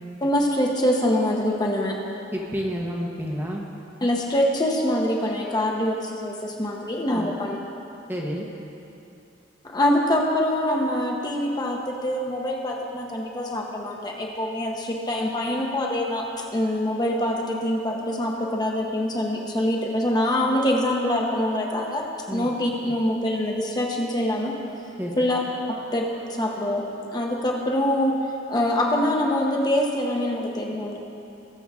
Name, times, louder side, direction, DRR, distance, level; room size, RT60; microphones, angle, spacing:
voice 1, 0.2-2.0 4.0-7.6 9.6-16.3 16.5-24.5 25.2-25.4 25.9-26.8 27.1-28.1 28.5-31.0, left 1 dB, 20° left, -1 dB, 1.0 m, -24 dB
voice 2, 2.3-3.7 7.1-7.3 8.1-8.5 22.3-22.5 25.0-25.2, equal, 10° right, -1 dB, 1.0 m, -29 dB
20.0 x 7.1 x 3.6 m, 2.8 s
head